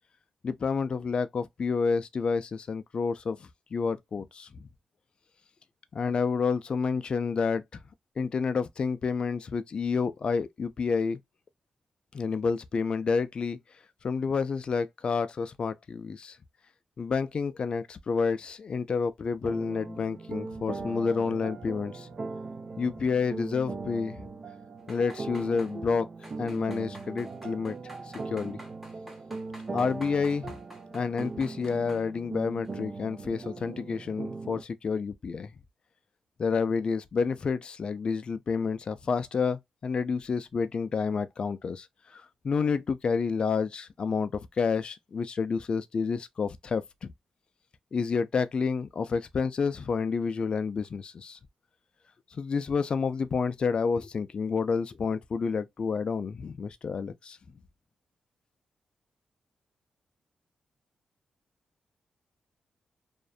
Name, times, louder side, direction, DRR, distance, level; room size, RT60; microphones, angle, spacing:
voice 1, 0.4-4.7 5.9-7.6 8.2-11.2 12.1-13.6 14.0-16.4 17.0-22.1 22.8-24.3 24.9-26.1 26.4-27.8 28.3-28.6 29.7-30.6 30.9-35.5 36.4-47.1 47.9-51.4 52.3-57.4, left 5 dB, 45° left, 0.3 m, -29 dB
sound 1, 19.4-34.6, right 3 dB, 40° right, 0.3 m, -39 dB
sound 2, 24.8-25.7 26.2-32.1 32.5-32.8 33.2-33.3, equal, 5° right, 0.8 m, -50 dB
2.5 x 2.1 x 2.3 m
wide cardioid pair, 110°, 2 cm